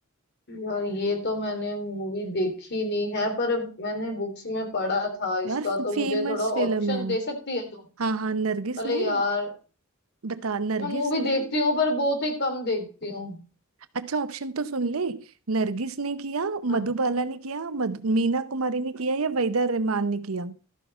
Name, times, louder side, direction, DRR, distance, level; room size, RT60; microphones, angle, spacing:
voice 1, 0.5-7.8 8.8-9.5 10.8-13.4 16.7-16.8, left 2 dB, 50° left, 3.1 m, -28 dB
voice 2, 5.4-7.2 8.0-9.2 10.2-11.5 13.9-20.6, right 3 dB, 70° right, 0.8 m, -28 dB
13.5 x 5.8 x 5.5 m
head